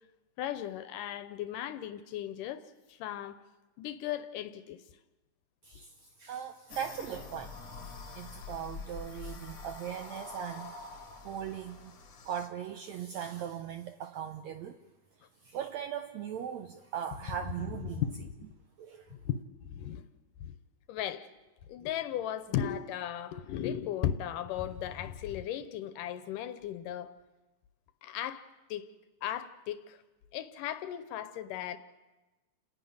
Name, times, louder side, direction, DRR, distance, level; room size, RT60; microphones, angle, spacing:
voice 1, 0.4-2.6 2.9-3.4 3.8-4.8 17.9-18.3 19.1-20.0 20.4-20.5 20.9-21.3 21.7-27.1 28.0-28.4 28.7-28.9 29.2-30.0 30.3-31.8, left 10 dB, 80° left, 2.4 m, -36 dB
voice 2, 5.6-7.6 7.8-12.0 12.3-14.8 15.4-18.1 18.8-19.1, right 9 dB, 75° right, 1.7 m, -39 dB
sound 1, 6.7-12.5, left 4 dB, 50° left, 2.0 m, -46 dB
29.5 x 10.5 x 9.4 m
omnidirectional pair, 3.9 m